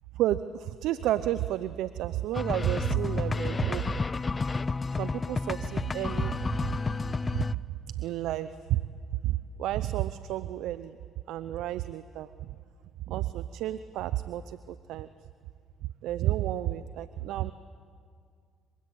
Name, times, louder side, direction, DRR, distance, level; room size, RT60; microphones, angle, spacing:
voice 1, 0.1-3.9 4.9-6.4 7.3-7.5 7.9-8.9 9.2-11.0 11.3-12.5 13.1-15.1 16.0-17.5, right 13 dB, 75° right, 13 dB, 0.7 m, -31 dB
sound 1, 2.3-7.5, left 3 dB, 30° left, 0.7 m, -30 dB
27.0 x 24.0 x 8.7 m, 2.2 s
supercardioid pair, 65°, 0 cm